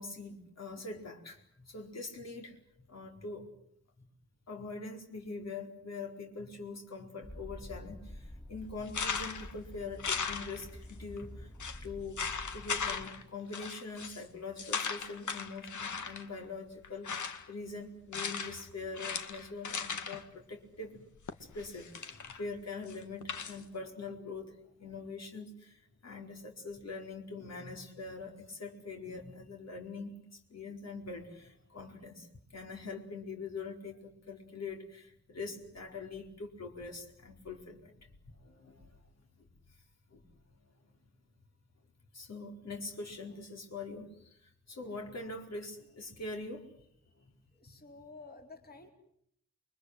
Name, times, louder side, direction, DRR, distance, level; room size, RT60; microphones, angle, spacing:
voice 1, 0.0-2.6 2.9-3.5 4.0-4.1 4.5-11.5 11.8-12.2 12.5-21.1 21.4-38.1 38.4-39.0 39.4-39.8 40.1-40.2 42.1-46.7 47.2-47.3 47.7-47.8, left 3 dB, 60° left, 2 dB, 4.6 m, -43 dB
sound 1, 7.2-13.0, left 1 dB, 15° left, 3.0 m, -48 dB
sound 2, 8.9-9.5 10.0-10.9 11.2-11.3 11.6-11.8 12.2-13.2 13.5-14.2 14.6-16.3 16.8-17.5 18.1-18.6 18.9-20.2 21.3-22.4 22.9-23.6, left 6 dB, 80° left, 2.2 m, -37 dB
voice 2, 47.5-48.9, left 3 dB, 30° left, 3 dB, 4.2 m, -51 dB
29.0 x 24.0 x 8.0 m, 0.69 s
wide cardioid pair, 130°, 29 cm